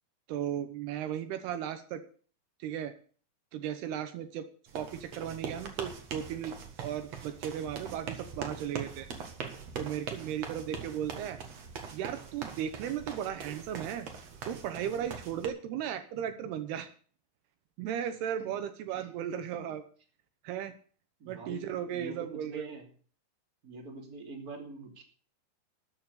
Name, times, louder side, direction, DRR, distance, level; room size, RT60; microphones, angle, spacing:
voice 1, 0.3-2.0 2.6-2.9 3.5-4.5 4.7-6.6 6.8-9.1 9.8-11.4 11.9-14.1 14.5-16.9 17.8-19.8 20.4-20.7 21.3-22.7, right 9 dB, 80° right, 9 dB, 3.0 m, -36 dB
sound 1, 4.7-15.5, right 6 dB, 50° right, 2.2 m, -42 dB
voice 2, 21.2-22.9 23.6-25.0, right 3 dB, 25° right, 1 dB, 2.9 m, -45 dB
13.0 x 7.2 x 8.2 m, 0.43 s
omnidirectional pair, 4.7 m